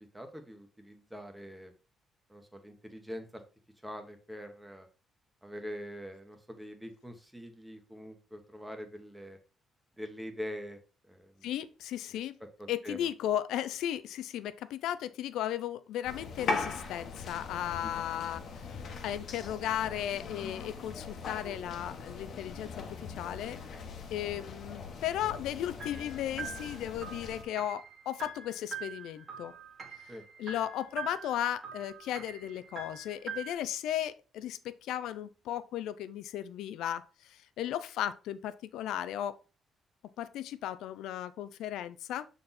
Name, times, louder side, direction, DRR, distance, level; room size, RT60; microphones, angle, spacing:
voice 1, 0.1-1.7 2.3-3.4 3.8-4.9 5.4-9.4 10.0-10.8 11.1-11.5 12.1-12.2 12.6-13.1 17.8-18.0 30.1-30.2, equal, 5° right, 1.4 m, -44 dB
voice 2, 11.4-12.4 12.7-22.7 23.0-23.6 24.1-29.5 30.4-39.4 40.2-42.3, left 11 dB, 85° left, 0.5 m, -35 dB
sound 1, 16.0-27.4, left 4 dB, 60° left, 1.2 m, -40 dB
sound 2, 25.8-33.5, right 5 dB, 45° right, 1.8 m, -44 dB
6.6 x 4.1 x 4.2 m
cardioid pair, 90°, 0 cm